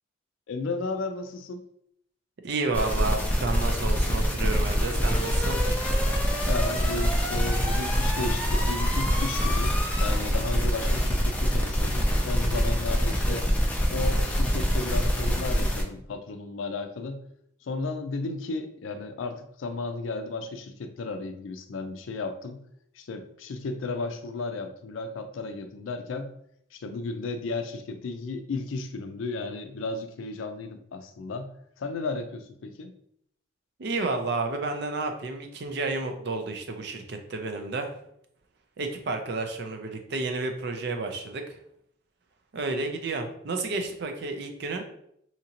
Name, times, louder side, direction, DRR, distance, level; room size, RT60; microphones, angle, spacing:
voice 1, 0.5-1.6 6.5-13.5 13.9-17.2 17.6-22.6 22.9-26.3 26.7-31.5 31.8-32.9, left 3 dB, 80° left, 7 dB, 0.4 m, -34 dB
voice 2, 2.4-5.6 33.8-37.9 38.8-41.4 42.5-44.8, right 3 dB, 55° right, 6 dB, 0.4 m, -31 dB
sound 1, 2.7-15.8, equal, 10° left, 0.3 m, -25 dB
2.8 x 2.5 x 2.8 m, 0.70 s
head